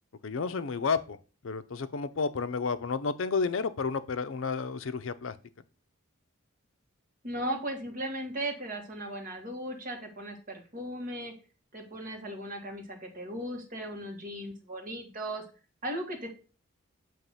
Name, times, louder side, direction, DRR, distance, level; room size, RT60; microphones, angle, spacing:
voice 1, 0.2-1.2 1.4-5.4, left 5 dB, 70° left, 12 dB, 0.5 m, -31 dB
voice 2, 7.2-11.3 11.7-15.4 15.8-16.3, right 1 dB, 40° right, 3 dB, 1.6 m, -37 dB
7.5 x 3.0 x 5.6 m, 0.34 s
head